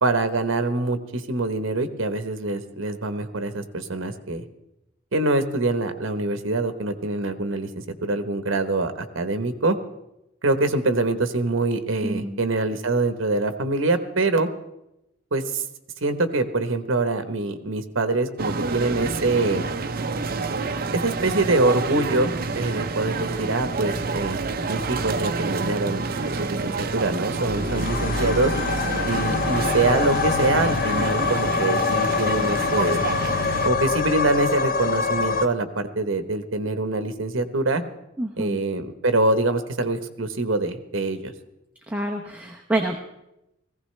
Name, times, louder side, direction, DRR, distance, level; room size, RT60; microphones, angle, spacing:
voice 1, 0.0-4.4 5.1-7.7 8.0-9.8 10.4-14.5 15.3-15.6 16.0-19.7 20.9-24.4 24.7-28.5 29.0-33.0 33.6-37.8 38.4-41.3, right 2 dB, 70° right, 9 dB, 1.0 m, -24 dB
voice 2, 12.0-12.4 38.2-38.6 41.9-43.0, right 1 dB, 5° right, 1 dB, 0.7 m, -27 dB
sound 1, 18.4-33.7, right 4 dB, 45° right, 0.6 m, -28 dB
sound 2, 27.5-35.5, left 5 dB, 45° left, 0.5 m, -25 dB
18.0 x 15.5 x 3.2 m, 0.90 s
head